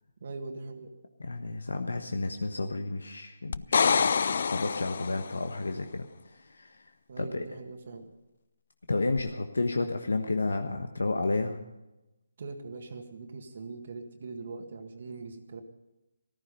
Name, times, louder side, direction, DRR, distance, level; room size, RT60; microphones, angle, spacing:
voice 1, 0.2-0.9 7.1-8.1 12.4-15.6, right 3 dB, 55° right, 4 dB, 1.7 m, -41 dB
voice 2, 1.2-4.1 4.4-6.1 6.3-6.8 7.2-7.4 8.9-11.6, left 3 dB, 85° left, 6 dB, 1.3 m, -31 dB
sound 1, 3.5-5.4 9.2-9.3, left 5 dB, 55° left, 0.4 m, -26 dB
14.5 x 14.0 x 5.4 m, 0.99 s
hypercardioid pair, 160°, 0 cm